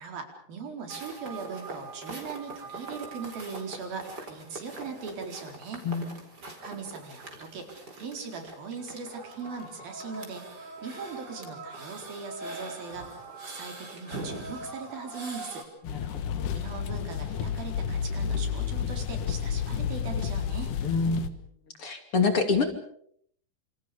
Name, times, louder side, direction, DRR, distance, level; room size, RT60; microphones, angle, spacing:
voice 1, 0.0-5.9 6.6-7.7 8.0-15.7 16.5-20.8, right 5 dB, 85° right, 4 dB, 6.1 m, -40 dB
sound 1, 0.9-15.6, right 2 dB, 25° right, 5.1 m, -42 dB
sound 2, 15.8-21.3, left 7 dB, 65° left, 2.9 m, -31 dB
voice 2, 15.8-16.5 20.8-21.3 21.8-22.6, left 4 dB, 40° left, 7 dB, 3.3 m, -27 dB
29.0 x 27.5 x 5.2 m, 0.64 s
omnidirectional pair, 4.0 m